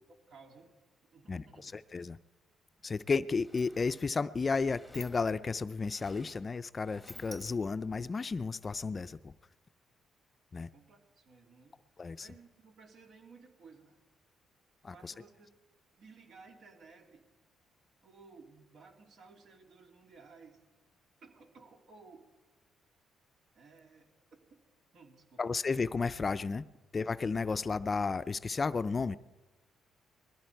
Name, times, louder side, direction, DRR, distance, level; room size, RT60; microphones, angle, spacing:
voice 1, 0.1-0.7 1.1-1.7 10.7-11.8 12.1-14.0 14.8-15.5 15.9-17.3 18.0-20.6 21.2-22.3 23.5-24.6 24.9-25.4, right 4 dB, 65° right, 3 dB, 2.9 m, -57 dB
voice 2, 1.3-2.2 2.8-9.3 10.5-10.7 12.0-12.3 14.8-15.1 25.4-26.6 26.9-29.2, left 4 dB, 35° left, 14 dB, 0.5 m, -33 dB
Sliding door, 2.7-2.8 3.1-8.0, left 1 dB, ahead, 1.2 m, -54 dB
21.0 x 15.0 x 4.6 m, 1.2 s
cardioid pair, 90°, 0 cm